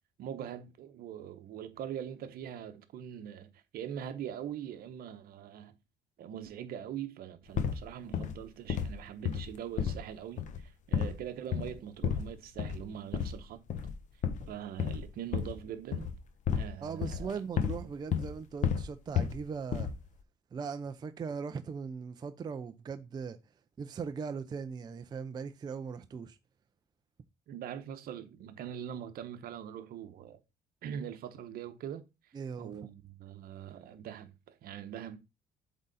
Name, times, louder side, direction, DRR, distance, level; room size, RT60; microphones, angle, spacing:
voice 1, 0.2-5.7 6.2-13.6 14.5-16.1 16.5-17.4 27.5-30.4 30.8-32.3 32.6-35.2, right 9 dB, 60° right, 1.0 m, -42 dB
sound 1, 7.5-7.8 8.1-8.4 8.7-9.0 9.2-10.1 10.4-10.7 10.9-11.2 11.5-11.8 12.0-12.3 12.6-12.9 13.1-13.4 13.7-13.9 14.2-15.7 15.9-16.7 17.0-17.8 18.1-18.3 18.6-19.4 19.7-20.1, left 7 dB, 45° left, 0.9 m, -32 dB
voice 2, 16.8-19.9 20.5-23.4 23.8-26.4 32.3-32.7, right 6 dB, 25° right, 0.4 m, -39 dB
8.1 x 3.7 x 4.0 m
cardioid pair, 140°, 17 cm